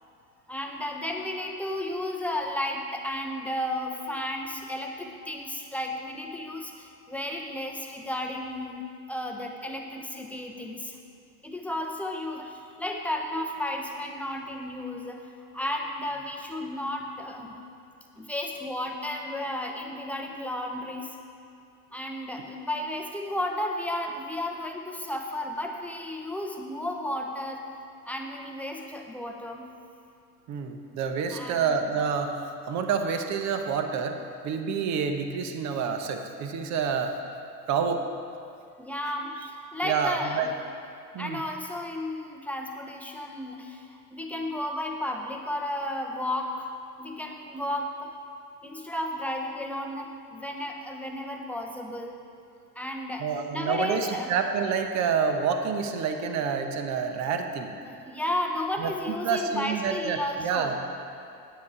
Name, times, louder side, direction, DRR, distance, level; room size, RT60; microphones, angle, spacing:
voice 1, 0.5-11.0 11.4-15.3 15.5-17.6 18.2-21.2 21.9-27.7 28.0-29.7 31.3-31.8 38.8-40.5 41.2-46.7 47.0-48.1 48.6-52.2 52.7-53.3 53.5-54.3 57.9-60.7, left 1 dB, 5° left, 1 dB, 0.9 m, -33 dB
voice 2, 30.5-37.2 37.7-38.0 39.8-40.5 41.1-41.4 53.2-57.7 58.8-60.7, right 6 dB, 35° right, 5 dB, 1.0 m, -28 dB
9.5 x 9.1 x 4.9 m, 2.6 s
hypercardioid pair, 90°, 49 cm